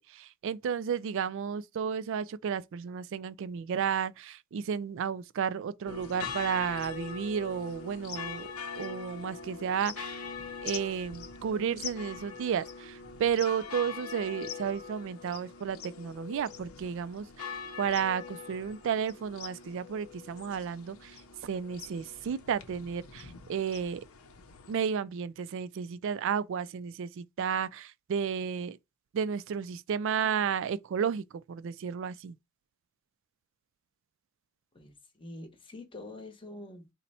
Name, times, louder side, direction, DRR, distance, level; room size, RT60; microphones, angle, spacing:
voice 1, 0.1-10.2 10.6-24.0 24.7-28.8 29.1-32.4, right 7 dB, 60° right, 0.3 m, -32 dB
sound 1, 5.9-24.7, left 6 dB, 85° left, 0.7 m, -43 dB
voice 2, 34.7-36.9, left 2 dB, 25° left, 0.9 m, -46 dB
4.0 x 2.1 x 4.1 m
head